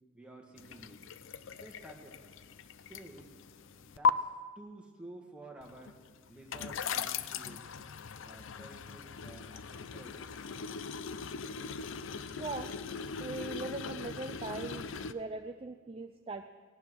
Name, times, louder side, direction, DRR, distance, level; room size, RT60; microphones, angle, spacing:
voice 1, 0.1-1.1 1.5-2.2 2.9-3.3 3.8-6.0 6.3-7.6 8.2-10.3, right 2 dB, 5° right, 0 dB, 1.7 m, -52 dB
sound 1, 0.6-4.1 5.6-15.1, left 5 dB, 60° left, 0.5 m, -38 dB
voice 2, 12.4-12.8 13.2-16.5, right 3 dB, 25° right, 6 dB, 0.4 m, -40 dB
17.0 x 10.5 x 6.2 m, 1.5 s
head